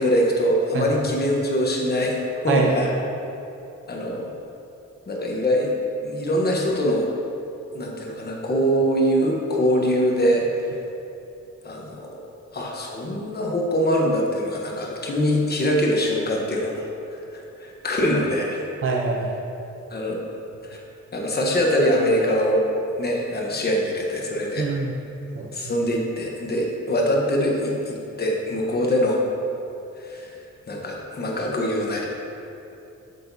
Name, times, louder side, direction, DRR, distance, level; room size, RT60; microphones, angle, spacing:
voice 1, 0.0-2.9 3.9-4.3 5.1-5.7 6.0-7.1 7.7-10.7 11.6-12.3 12.5-18.6 19.9-20.2 20.6-20.8 21.1-22.7 23.0-24.7 25.5-29.2 30.0-30.3 30.7-32.1, equal, 35° left, -1 dB, 1.0 m, -23 dB
voice 2, 2.5-2.9 18.8-19.3 24.6-24.9 25.3-25.7, right 4 dB, 45° right, -1 dB, 0.7 m, -25 dB
7.9 x 6.7 x 2.7 m, 2.8 s
wide cardioid pair, 125°, 30 cm